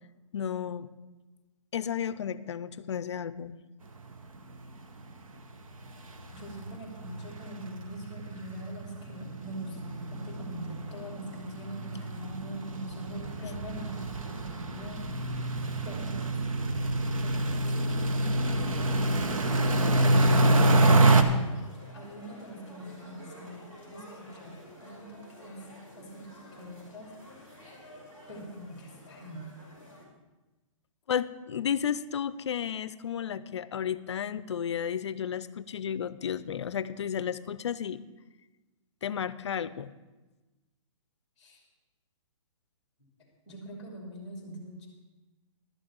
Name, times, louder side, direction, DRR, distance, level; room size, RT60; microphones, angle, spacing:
voice 1, 0.3-0.9 1.7-3.6 31.1-38.0 39.0-39.9, left 8 dB, 55° left, 16 dB, 0.5 m, -33 dB
sound 1, 4.1-4.2 4.5-4.7 5.0-5.1 5.4-21.2, right 2 dB, 80° right, 1.3 m, -27 dB
voice 2, 6.3-15.0 15.8-16.7 17.2-20.0 21.1-21.5 21.9-25.7 25.9-27.1 28.3-29.5 41.4-41.6 43.5-44.9, right 1 dB, 5° left, -1 dB, 2.8 m, -43 dB
sound 2, 19.3-30.0, left 1 dB, 30° right, 4.3 m, -50 dB
12.0 x 6.3 x 8.7 m, 1.2 s
hypercardioid pair, 170°, 17 cm